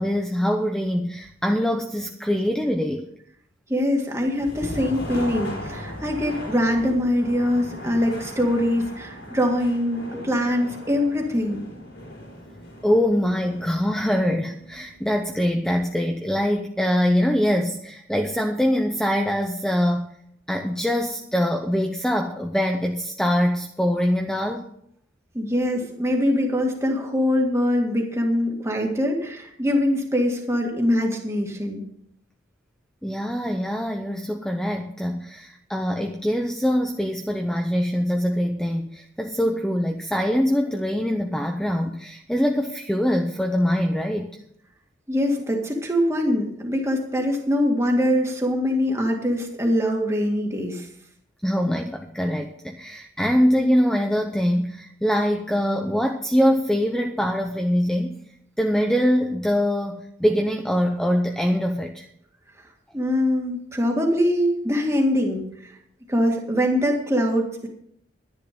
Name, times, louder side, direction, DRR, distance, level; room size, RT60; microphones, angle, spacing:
voice 1, 0.0-3.1 10.1-10.2 12.8-20.1 20.5-24.7 33.0-44.4 51.4-58.2 58.6-62.1, equal, 5° left, 4 dB, 0.7 m, -23 dB
voice 2, 3.7-11.6 25.3-31.8 45.1-50.9 62.9-65.7 66.1-67.7, left 1 dB, 15° right, 1 dB, 2.0 m, -23 dB
sound 1, 4.2-16.0, left 1 dB, 65° left, 4.4 m, -38 dB
12.0 x 10.5 x 5.2 m, 0.70 s
head